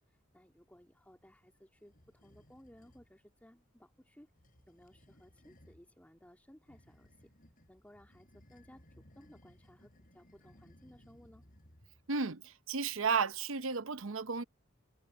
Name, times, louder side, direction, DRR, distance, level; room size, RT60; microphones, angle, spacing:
voice 1, 0.1-4.3 4.7-7.3 7.7-11.4, equal, 10° left, 2.6 m, -60 dB
sound 1, 1.8-3.1 4.3-5.9 6.7-12.2, equal, 40° left, 5.5 m, -62 dB
voice 2, 12.1-14.4, right 5 dB, 70° right, 0.8 m, -33 dB
head